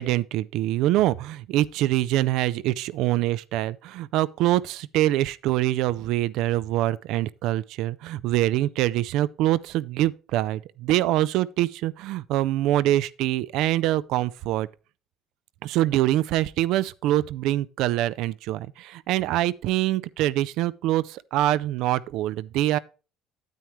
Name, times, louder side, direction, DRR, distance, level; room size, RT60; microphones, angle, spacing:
voice 1, 0.0-14.7 15.6-22.8, right 14 dB, 75° right, 0.4 m, -24 dB
9.2 x 8.6 x 3.1 m
cardioid pair, 105°, 0 cm